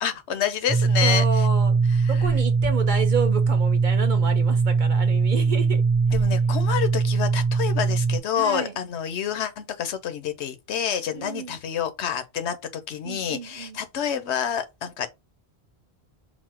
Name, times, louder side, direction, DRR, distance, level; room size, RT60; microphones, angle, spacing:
voice 1, 0.0-1.5 2.0-2.2 6.1-15.1, left 9 dB, 90° left, 1.0 m, -28 dB
sound 1, 0.7-8.2, right 4 dB, 25° right, 0.3 m, -21 dB
voice 2, 1.0-1.7 2.1-5.8 8.4-8.7 11.2-11.6 13.0-13.8, right 5 dB, 50° right, 1.0 m, -30 dB
4.1 x 2.1 x 4.2 m
omnidirectional pair, 1.1 m